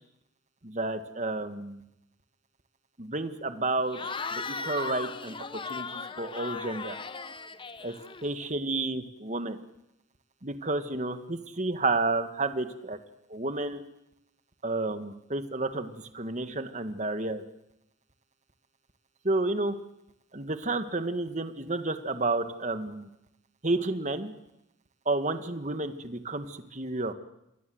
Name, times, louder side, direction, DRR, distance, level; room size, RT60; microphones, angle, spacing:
voice 1, 0.6-1.8 3.0-4.0 4.3-5.3 5.7-7.0 7.8-7.9 8.2-9.6 10.4-13.0 13.3-13.8 14.6-17.4 19.2-19.7 20.3-23.1 23.6-24.3 25.1-27.1, right 2 dB, 35° right, 9 dB, 1.8 m, -31 dB
Cheering / Crowd, 3.9-8.5, left 4 dB, 25° left, 1.0 m, -37 dB
28.0 x 23.0 x 8.0 m, 0.86 s
head